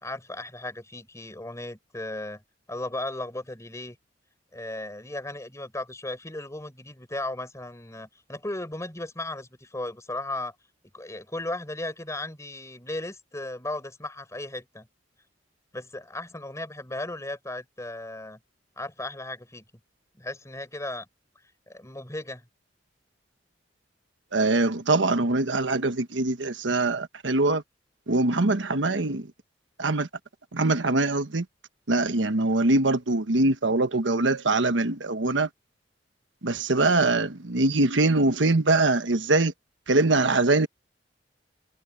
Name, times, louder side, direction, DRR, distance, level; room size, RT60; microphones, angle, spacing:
voice 1, 0.0-2.4 2.7-4.0 4.5-10.5 10.9-14.9 15.7-18.4 18.8-19.6 20.2-21.1 21.7-22.4, left 2 dB, 15° left, 4.4 m, -36 dB
voice 2, 24.3-27.6 28.1-29.3 29.8-30.1 30.5-31.4 31.9-35.5 36.4-39.5 39.9-40.7, right 2 dB, 85° right, 1.2 m, -23 dB
head